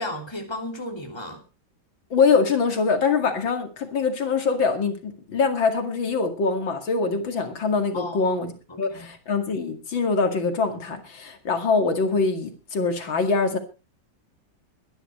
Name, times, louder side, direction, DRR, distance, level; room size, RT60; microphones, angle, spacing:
voice 1, 0.0-1.4 7.9-9.1, left 1 dB, 15° left, 3 dB, 3.0 m, -35 dB
voice 2, 2.1-13.6, left 4 dB, 80° left, 5 dB, 3.0 m, -23 dB
22.5 x 11.0 x 3.2 m, 0.32 s
omnidirectional pair, 2.1 m